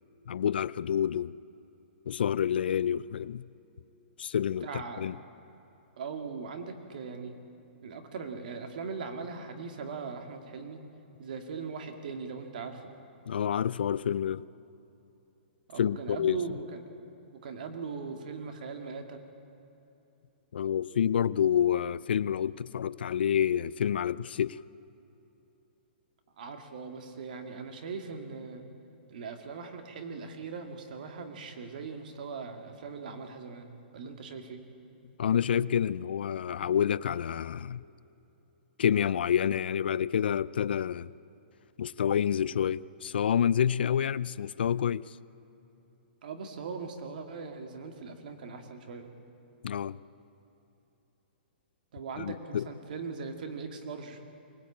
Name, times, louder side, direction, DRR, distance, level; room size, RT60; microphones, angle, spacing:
voice 1, 0.3-1.3 2.1-3.5 4.2-5.2 13.3-14.5 15.8-16.4 20.5-24.6 35.2-37.8 38.8-41.1 41.8-45.2 49.6-50.0 52.2-52.7, left 9 dB, 70° left, 0.5 m, -28 dB
voice 2, 4.6-5.1 6.0-7.4 7.8-10.8 11.2-12.9 15.7-17.1 17.4-19.2 26.4-28.6 29.1-34.6 46.2-49.1 51.9-54.2, right 5 dB, 50° right, 2.2 m, -40 dB
24.0 x 19.0 x 8.7 m
hypercardioid pair, 170°, 6 cm